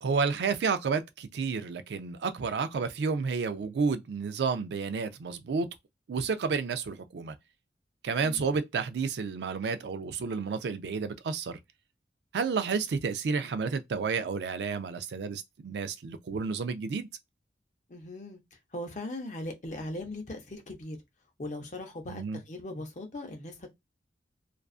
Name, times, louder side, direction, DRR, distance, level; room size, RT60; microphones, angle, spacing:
voice 1, 0.0-5.7 6.1-7.4 8.0-11.6 12.3-17.1 22.1-22.4, right 5 dB, 75° right, 0.4 m, -31 dB
voice 2, 17.9-18.4 18.7-21.0 21.4-23.7, left 1 dB, 45° left, 0.6 m, -39 dB
2.4 x 2.3 x 2.3 m
head